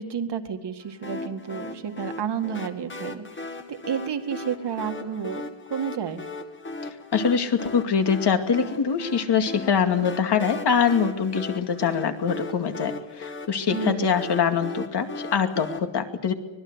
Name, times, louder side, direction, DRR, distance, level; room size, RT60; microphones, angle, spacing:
voice 1, 0.0-6.2 13.7-14.2, right 7 dB, 55° right, 6 dB, 2.1 m, -31 dB
sound 1, 1.0-15.8, left 2 dB, 25° left, 2.0 m, -37 dB
voice 2, 7.1-16.3, left 6 dB, 50° left, 6 dB, 2.4 m, -24 dB
25.0 x 20.5 x 8.1 m, 1.1 s
wide cardioid pair, 140°, 50 cm